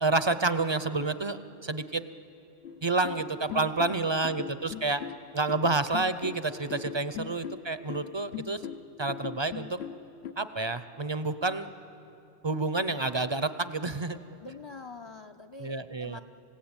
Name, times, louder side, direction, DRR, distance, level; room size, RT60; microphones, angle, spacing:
voice 1, 0.0-2.0 2.8-5.0 5.3-8.6 9.0-9.8 10.4-11.7 12.4-14.2 15.6-16.2, right 3 dB, 35° right, 12 dB, 0.5 m, -29 dB
sound 1, 2.6-10.3, left 9 dB, 80° left, 1.1 m, -40 dB
voice 2, 3.5-4.1 6.8-6.9 14.4-16.2, left 3 dB, 35° left, 8 dB, 0.5 m, -46 dB
27.5 x 17.0 x 8.8 m, 2.8 s
omnidirectional pair, 1.1 m